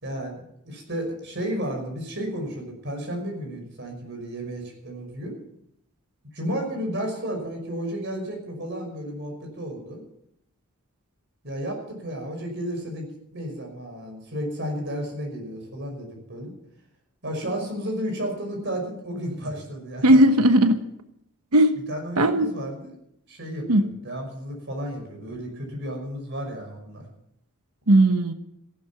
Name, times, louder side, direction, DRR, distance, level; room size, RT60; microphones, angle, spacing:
voice 1, 0.0-5.4 6.3-10.0 11.4-16.5 17.2-20.2 21.9-22.9 23.3-27.1, equal, 55° right, 2 dB, 5.7 m, -32 dB
voice 2, 20.0-20.8 21.5-21.8 22.2-22.5 23.7-23.8 27.9-28.3, right 1 dB, 90° right, 8 dB, 1.2 m, -17 dB
15.0 x 11.5 x 7.2 m, 0.76 s
head